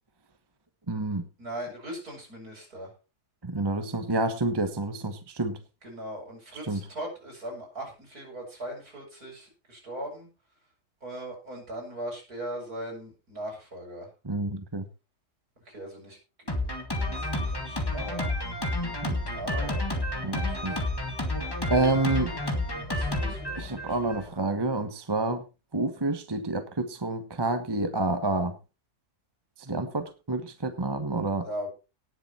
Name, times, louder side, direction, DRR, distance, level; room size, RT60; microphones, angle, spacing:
voice 1, 0.9-1.3 3.4-5.6 6.7-6.8 14.2-14.9 19.1-19.2 20.2-20.8 21.7-22.3 23.6-25.4 25.7-28.6 29.6-31.5, right 2 dB, 15° right, 8 dB, 1.1 m, -28 dB
voice 2, 1.4-2.9 5.8-10.3 11.0-14.1 15.7-16.7 17.1-18.3 19.4-19.8 20.7-20.8 21.7-24.3 31.4-31.7, right 1 dB, 65° right, -1 dB, 7.8 m, -39 dB
Drum kit, 16.5-24.3, left 1 dB, 15° left, 2.1 m, -30 dB
18.5 x 7.3 x 4.3 m, 0.31 s
omnidirectional pair, 1.7 m